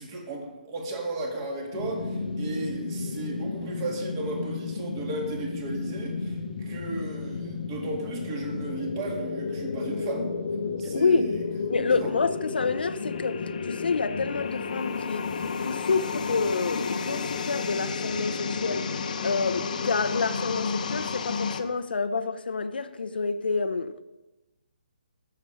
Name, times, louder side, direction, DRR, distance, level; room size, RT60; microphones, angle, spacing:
voice 1, 0.0-10.3 10.8-11.4 11.8-12.1, right 2 dB, 25° right, 2.2 m, -35 dB
sound 1, 1.7-21.6, left 4 dB, 50° left, 1.0 m, -32 dB
voice 2, 10.8-11.3 11.7-15.3 15.6-18.9 19.2-24.0, left 4 dB, 80° left, 0.7 m, -28 dB
12.5 x 6.7 x 4.9 m
hypercardioid pair, 160°, 5 cm